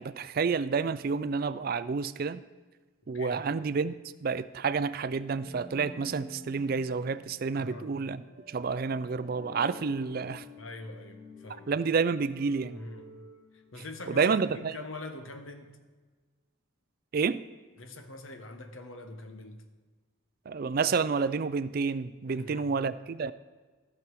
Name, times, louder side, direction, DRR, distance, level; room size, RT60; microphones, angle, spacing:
voice 1, 0.0-2.4 3.1-3.9 4.2-8.2 8.5-10.4 11.7-12.8 14.1-14.7 17.1-17.4 20.5-23.3, right 5 dB, 45° right, 0.4 m, -29 dB
sound 1, 5.3-14.3, left 1 dB, 50° left, 2.7 m, -50 dB
voice 2, 7.5-8.0 10.6-11.7 12.7-13.1 13.5-15.8 17.8-19.6 22.3-22.8, left 2 dB, 70° left, 1.1 m, -44 dB
15.0 x 6.3 x 4.7 m
head